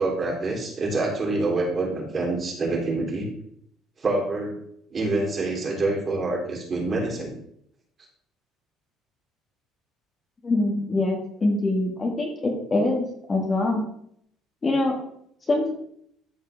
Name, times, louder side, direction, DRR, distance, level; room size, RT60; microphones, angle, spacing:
voice 1, 0.0-3.3 4.0-4.6 4.9-7.3, right 2 dB, 30° right, -1 dB, 3.5 m, -26 dB
voice 2, 10.4-13.8 14.6-14.9 15.5-15.7, left 2 dB, 25° left, 0 dB, 2.0 m, -24 dB
13.0 x 4.8 x 3.6 m, 0.69 s
cardioid pair, 115°, 0 cm